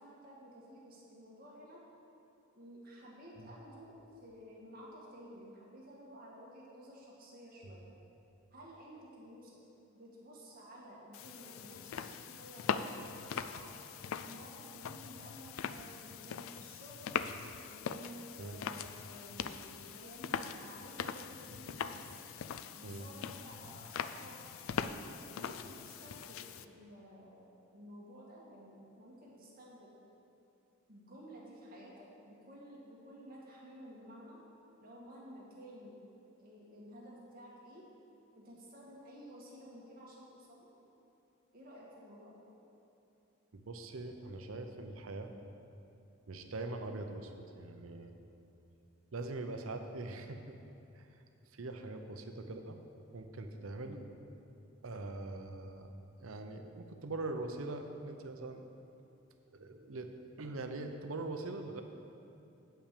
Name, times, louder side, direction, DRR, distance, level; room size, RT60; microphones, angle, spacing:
voice 1, 0.0-1.8 2.6-7.9 8.5-9.6 9.9-13.7 14.2-17.2 17.6-22.2 22.7-24.4 25.1-30.0 30.9-34.4 34.8-36.0 36.4-37.9 38.3-40.7 41.5-42.5 53.8-54.2, equal, 45° right, -5 dB, 1.9 m, -53 dB
sound 1, 11.1-26.6, left 7 dB, 75° left, 0.3 m, -41 dB
voice 2, 43.5-45.3 46.3-48.1 49.1-50.6 50.9-51.2 51.5-52.8 53.1-54.0 54.8-55.9 56.2-58.6 59.5-60.1 60.4-61.8, right 2 dB, 80° right, 6 dB, 0.7 m, -42 dB
8.8 x 5.7 x 6.7 m, 2.8 s
head